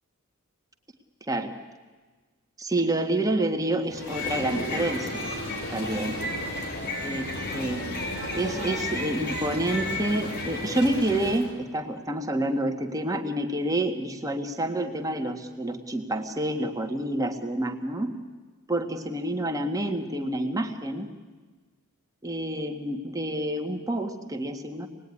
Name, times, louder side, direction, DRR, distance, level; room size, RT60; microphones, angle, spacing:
voice 1, 2.6-5.2 5.7-6.2 7.0-7.8 8.3-18.1 18.7-21.1 22.2-24.9, right 1 dB, 15° right, 4 dB, 1.8 m, -28 dB
sound 1, 3.9-11.5, left 1 dB, 50° left, 6.0 m, -32 dB
26.0 x 20.0 x 9.9 m, 1.3 s
head